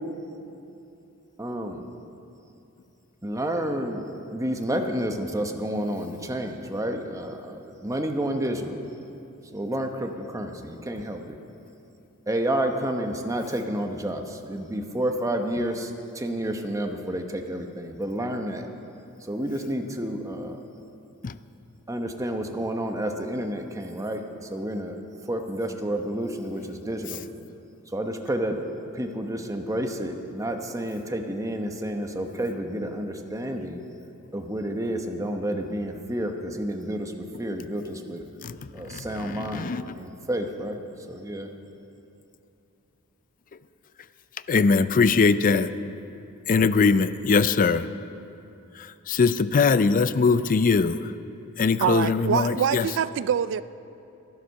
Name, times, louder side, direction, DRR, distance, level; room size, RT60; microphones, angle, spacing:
voice 1, 1.4-1.9 3.2-8.8 9.5-11.4 12.3-18.7 19.2-20.6 21.9-25.0 25.3-27.2 27.9-28.6 28.9-33.8 34.3-37.1 37.4-38.2 38.7-40.8 41.1-41.5, right 1 dB, 15° right, 4 dB, 0.9 m, -30 dB
voice 2, 38.4-40.0 44.5-45.8 46.5-47.9 48.7-51.1 51.6-52.9, left 4 dB, 35° left, 14 dB, 0.4 m, -22 dB
voice 3, 51.8-53.6, right 8 dB, 55° right, 16 dB, 0.3 m, -25 dB
14.5 x 11.0 x 6.4 m, 2.8 s
head